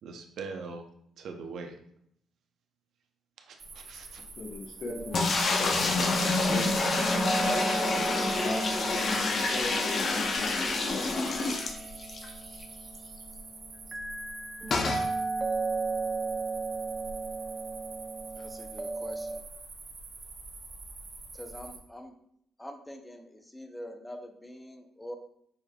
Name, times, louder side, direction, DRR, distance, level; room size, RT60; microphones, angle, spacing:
voice 1, 0.0-0.8 1.2-1.7 3.4-4.2, right 4 dB, 70° right, 4 dB, 0.6 m, -41 dB
sound 1, 3.6-21.8, right 3 dB, 50° right, 1.0 m, -46 dB
voice 2, 4.2-5.4 6.1-6.7 8.3-11.2, left 2 dB, 65° left, 1 dB, 1.0 m, -38 dB
sound 2, 4.9-19.4, right 3 dB, 25° right, 0.6 m, -36 dB
sound 3, 5.1-12.3 12.6-12.7 12.9-13.0 14.7-15.1, left 3 dB, 50° left, 0.6 m, -28 dB
voice 3, 18.4-19.4 21.3-22.1 22.6-25.2, left 1 dB, 10° left, 5 dB, 0.7 m, -44 dB
6.3 x 3.2 x 2.3 m, 0.70 s
cardioid pair, 90°, 0 cm